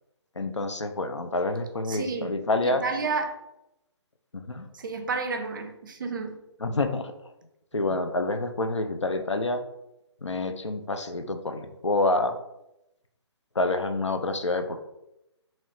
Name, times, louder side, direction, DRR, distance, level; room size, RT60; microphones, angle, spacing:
voice 1, 0.4-2.8 4.3-4.7 6.6-7.1 7.7-9.6 10.2-12.4 13.6-14.8, left 2 dB, 85° left, 0.4 m, -27 dB
voice 2, 1.9-2.3 2.6-3.4 4.7-6.4 7.9-8.0, right 4 dB, 45° right, 0.4 m, -31 dB
3.0 x 2.8 x 3.0 m
figure-of-eight pair, 135°, 15 cm